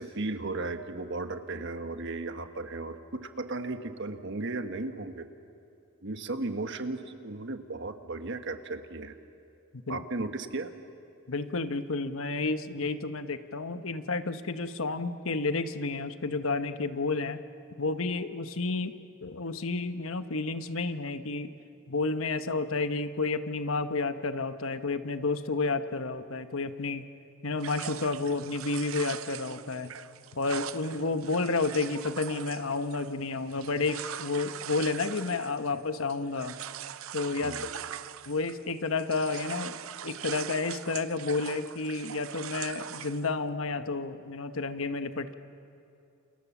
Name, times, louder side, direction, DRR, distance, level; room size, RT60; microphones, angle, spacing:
voice 1, 0.0-5.3 6.0-9.1 9.9-10.7 37.4-37.7, right 2 dB, 60° right, 8 dB, 1.4 m, -35 dB
voice 2, 11.3-17.4 17.8-21.5 21.9-27.0 27.4-30.0 30.3-36.6 37.1-37.7 38.3-39.8 40.0-45.3, left 3 dB, 75° left, 10 dB, 1.1 m, -31 dB
sound 1, 27.6-38.7 39.0-43.3, right 9 dB, 80° right, 0.7 m, -41 dB
29.5 x 28.0 x 7.2 m, 2.6 s
head